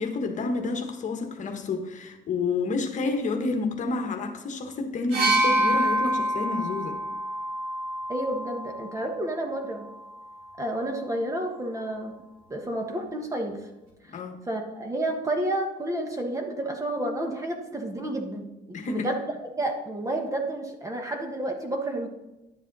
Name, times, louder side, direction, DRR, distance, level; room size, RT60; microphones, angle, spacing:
voice 1, 0.0-7.0 14.1-14.5 18.7-19.0, left 3 dB, 45° left, 4 dB, 1.4 m, -29 dB
sound 1, 5.1-8.9 10.0-10.1, right 1 dB, 65° right, 3.4 m, -26 dB
voice 2, 8.1-9.9 10.6-12.2 12.5-13.7 14.0-14.2 14.5-18.5 18.9-19.2 19.5-22.1, right 1 dB, 20° right, 3 dB, 1.4 m, -30 dB
11.0 x 7.3 x 4.1 m, 1.0 s
cardioid pair, 110°, 17 cm